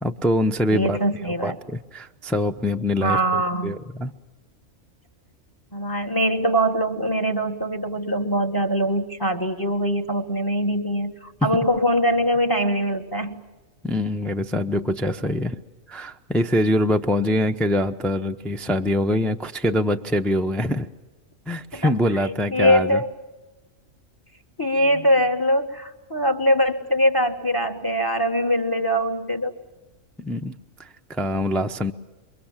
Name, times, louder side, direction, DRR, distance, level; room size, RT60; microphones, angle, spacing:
voice 1, 0.0-1.0 1.2-4.1 13.8-15.6 15.9-20.9 21.5-23.0 30.2-30.5 30.8-31.9, left 1 dB, ahead, 5 dB, 0.6 m, -24 dB
voice 2, 0.7-1.6 3.0-3.8 5.7-13.4 21.7-21.9 22.2-23.1 24.6-29.5, equal, 15° left, 8 dB, 1.5 m, -22 dB
28.0 x 23.5 x 7.4 m, 1.1 s
omnidirectional pair, 1.4 m